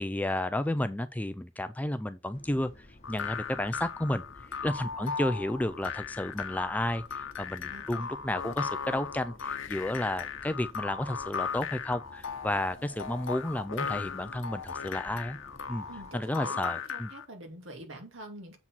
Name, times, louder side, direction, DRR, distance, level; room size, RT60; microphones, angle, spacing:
voice 1, 0.0-4.2 4.6-15.4 15.7-15.8 16.1-17.1, left 1 dB, 5° left, 0.4 m, -32 dB
sound 1, 2.3-16.1, left 1 dB, 35° left, 1.2 m, -54 dB
sound 2, 3.0-17.3, left 6 dB, 70° left, 0.9 m, -37 dB
voice 2, 7.7-8.1 15.9-16.6 16.9-18.6, right 1 dB, 70° right, 2.5 m, -46 dB
7.3 x 4.1 x 6.0 m
head